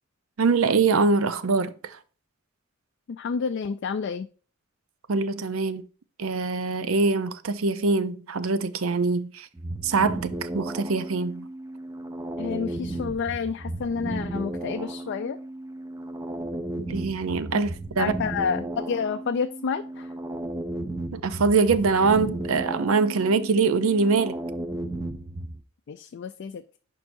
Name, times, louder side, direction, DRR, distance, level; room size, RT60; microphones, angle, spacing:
voice 1, 0.4-2.0 5.1-5.8 6.2-9.5 9.8-11.5 16.8-18.1 21.1-24.4, right 4 dB, 85° right, 0.6 m, -23 dB
voice 2, 3.1-4.3 12.4-15.4 17.5-17.6 18.0-20.1 25.9-26.6, left 6 dB, 55° left, 0.4 m, -29 dB
sound 1, 9.6-25.6, right 1 dB, 15° right, 0.5 m, -34 dB
10.5 x 4.7 x 2.6 m
head